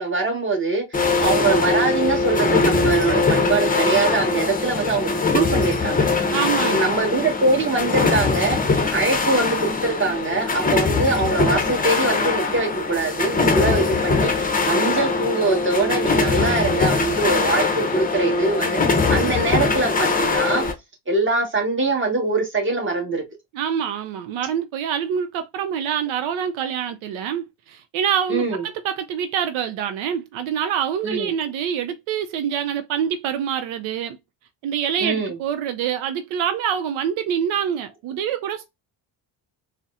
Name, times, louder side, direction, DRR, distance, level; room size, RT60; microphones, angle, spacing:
voice 1, 0.0-6.0 6.6-8.6 8.9-20.6 21.1-23.2 28.3-28.6 31.0-31.3 35.0-35.4, right 3 dB, 25° right, 1.4 m, -23 dB
sound 1, 0.9-20.7, left 3 dB, 20° left, 0.6 m, -21 dB
voice 2, 6.3-6.9 23.5-34.2 34.6-38.6, right 8 dB, 80° right, 0.6 m, -26 dB
4.0 x 2.1 x 2.4 m
cardioid pair, 90°, 47 cm